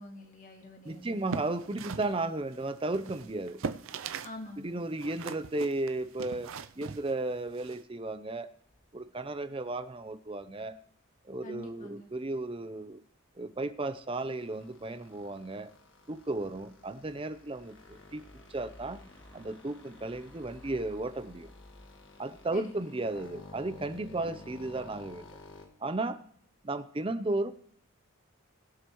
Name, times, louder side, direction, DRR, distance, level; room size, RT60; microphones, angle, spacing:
voice 1, 0.0-1.4 4.2-4.8 11.4-12.1 22.5-23.0 24.2-24.3, left 1 dB, 35° left, 2 dB, 2.0 m, -46 dB
voice 2, 0.8-3.6 4.6-8.5 8.9-10.8 11.3-13.0 13.4-15.7 16.1-18.2 18.5-19.0 19.3-21.5 22.2-25.3 25.8-26.2 26.6-27.5, right 2 dB, 25° right, 12 dB, 0.6 m, -34 dB
sound 1, 1.1-4.4 4.6-7.8, right 5 dB, 65° right, 0.5 m, -40 dB
sound 2, 7.9-22.8, left 1 dB, 10° left, 2.4 m, -59 dB
sound 3, 14.1-25.7, left 2 dB, 60° left, 1.6 m, -53 dB
22.0 x 7.9 x 3.1 m, 0.66 s
head